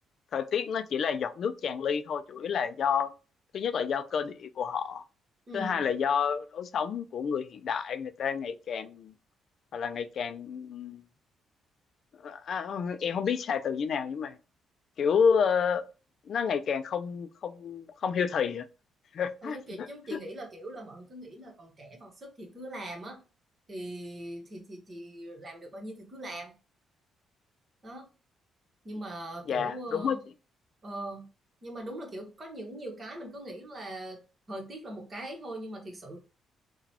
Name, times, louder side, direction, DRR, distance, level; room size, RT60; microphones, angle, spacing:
voice 1, 0.3-3.1 3.5-5.0 5.5-9.1 9.7-11.0 12.2-14.4 15.0-15.8 16.3-18.7 19.1-20.2 29.5-30.2, left 6 dB, 60° left, 0.3 m, -30 dB
voice 2, 5.5-5.8 19.4-23.2 23.7-26.5 27.8-28.1 28.8-30.2 30.8-31.3 31.6-34.2 34.5-36.2, right 1 dB, 35° right, 1.2 m, -41 dB
3.8 x 2.2 x 2.8 m
cardioid pair, 90°, 0 cm